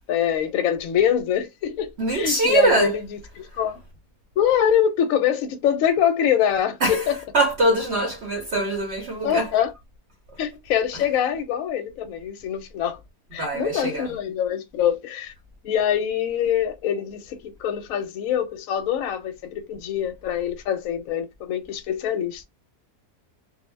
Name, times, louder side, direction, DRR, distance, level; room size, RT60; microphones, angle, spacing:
voice 1, 0.1-2.9 3.4-3.8 4.4-7.1 9.2-9.7 10.4-13.0 13.3-15.3 15.6-22.5, left 9 dB, 70° left, 0.9 m, -24 dB
voice 2, 2.0-3.0 6.8-9.5 10.3-10.4 13.4-14.1, right 2 dB, 55° right, 0.8 m, -23 dB
2.5 x 2.0 x 3.1 m
omnidirectional pair, 1.6 m